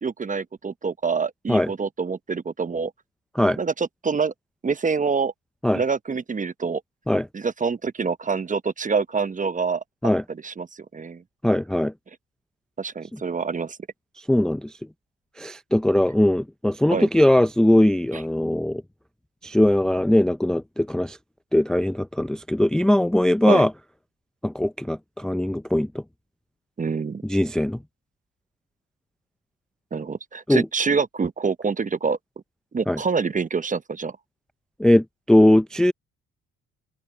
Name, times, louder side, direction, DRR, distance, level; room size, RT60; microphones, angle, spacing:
voice 1, 0.0-2.9 3.6-4.3 4.6-5.3 5.7-6.8 7.3-10.1 10.4-10.7 10.9-11.2 12.8-13.8 16.9-17.1 18.1-18.2 23.4-23.6 26.8-27.2 29.9-32.2 32.7-34.2, right 5 dB, 25° right, 0.8 m, -26 dB
voice 2, 11.4-11.9 14.3-14.7 15.4-18.8 19.4-21.2 21.5-23.7 24.4-26.0 27.2-27.8 30.5-30.7 32.9-33.0 34.8-35.9, left 1 dB, ahead, 0.4 m, -20 dB
open air
cardioid pair, 90°, 30 cm